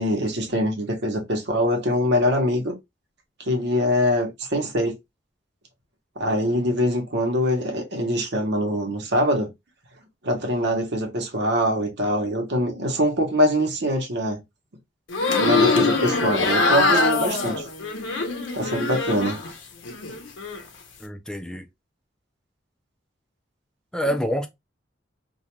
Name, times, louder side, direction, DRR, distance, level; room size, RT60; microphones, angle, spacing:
voice 1, 0.0-2.7 3.4-4.9 6.2-9.5 10.2-14.4 15.4-17.6 18.5-19.4 24.1-24.2, equal, 60° right, 0.8 m, -23 dB
sound 1, 15.1-19.5 19.9-20.6, left 3 dB, 80° left, 0.6 m, -23 dB
voice 2, 21.0-21.7 23.9-24.5, equal, 5° left, 0.3 m, -27 dB
2.3 x 2.2 x 2.9 m
head